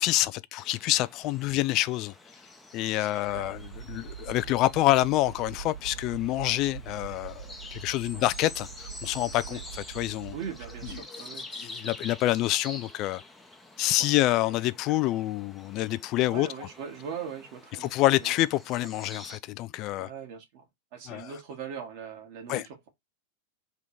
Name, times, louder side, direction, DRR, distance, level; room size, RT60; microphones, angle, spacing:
voice 1, 0.0-2.1 2.7-7.5 7.7-10.3 10.8-11.0 11.5-13.2 13.8-16.7 17.8-20.1 21.1-21.3 22.5-22.7, left 16 dB, 40° left, 0.3 m, -27 dB
sound 1, 0.6-19.4, left 2 dB, 5° left, 0.8 m, -47 dB
voice 2, 2.9-3.5 8.1-8.3 9.5-9.6 10.3-11.5 14.0-14.1 16.3-18.3 20.0-20.6 20.9-22.9, right 7 dB, 50° right, 1.6 m, -41 dB
sound 2, 3.3-11.0, right 8 dB, 75° right, 1.8 m, -43 dB
3.5 x 3.5 x 4.3 m
figure-of-eight pair, 90°, 0 cm